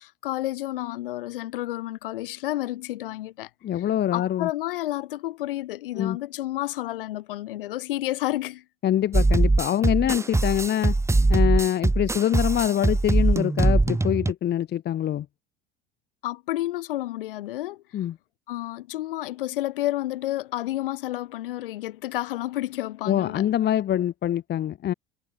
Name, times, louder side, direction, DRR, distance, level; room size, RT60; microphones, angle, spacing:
voice 1, 0.0-3.9 4.1-8.6 16.2-17.8 18.5-23.5, left 16 dB, 65° left, 6.1 m, -30 dB
voice 2, 3.6-4.5 6.0-6.2 8.8-10.9 11.3-15.3 17.9-18.2 23.1-24.9, left 11 dB, 35° left, 1.8 m, -24 dB
sound 1, 9.1-14.3, right 2 dB, 10° right, 2.5 m, -21 dB
figure-of-eight pair, 70°, 29 cm